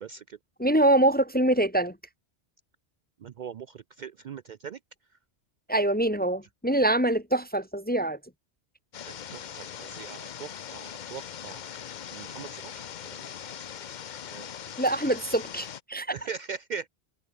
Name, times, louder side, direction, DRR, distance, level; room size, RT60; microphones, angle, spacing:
voice 1, 0.0-0.4 3.2-4.8 9.0-11.6 12.1-12.8 13.1-13.7 14.3-15.0 16.1-16.9, right 6 dB, 55° right, 0.5 m, -41 dB
voice 2, 0.6-2.0 5.7-8.2 14.8-16.1, right 1 dB, 10° left, 0.6 m, -24 dB
sound 1, 8.9-15.8, left 9 dB, 50° left, 0.7 m, -41 dB
omnidirectional pair, 1.1 m